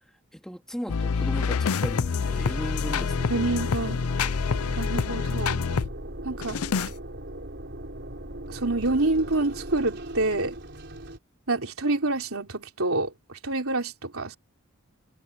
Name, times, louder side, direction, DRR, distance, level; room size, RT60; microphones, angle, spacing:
voice 1, 0.3-3.3 6.5-6.6, equal, 5° left, 3.3 m, -37 dB
sound 1, 0.9-5.9 6.4-6.9, left 5 dB, 85° left, 0.6 m, -27 dB
sound 2, 2.3-11.2, right 1 dB, 50° right, 5.2 m, -39 dB
voice 2, 3.3-4.0 4.8-5.6 6.2-6.6 8.5-10.6 11.5-14.4, right 2 dB, 70° right, 3.6 m, -27 dB
head